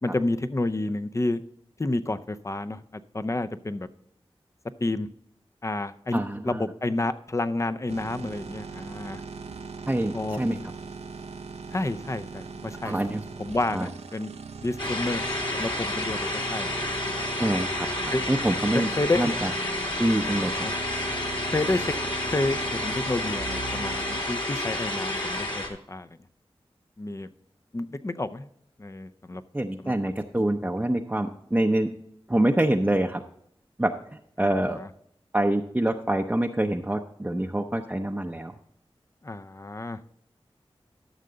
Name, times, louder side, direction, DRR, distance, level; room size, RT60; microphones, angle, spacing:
voice 1, 0.0-1.4 1.8-3.9 4.8-5.1 5.6-9.2 10.1-10.4 11.7-13.0 13.4-14.3 14.6-15.2 15.5-16.8 18.1-18.2 18.7-19.2 20.6-20.7 21.5-22.0 22.3-26.1 27.0-27.3 27.7-28.5 28.8-29.4 29.8-30.1 34.4-34.9 39.2-40.0, left 2 dB, 30° left, 11 dB, 0.6 m, -30 dB
voice 2, 6.1-6.6 9.9-10.6 12.8-13.2 13.7-13.9 17.4-18.9 19.2-19.5 20.0-20.6 29.5-31.9 32.3-33.2 33.8-33.9 34.4-34.8 35.3-38.5, right 1 dB, 15° right, 3 dB, 0.6 m, -25 dB
sound 1, 7.9-24.2, right 4 dB, 90° right, 0.7 m, -40 dB
sound 2, 14.8-25.7, left 1 dB, 50° left, 2.4 m, -30 dB
13.0 x 6.6 x 3.9 m, 0.70 s
wide cardioid pair, 50°, 10 cm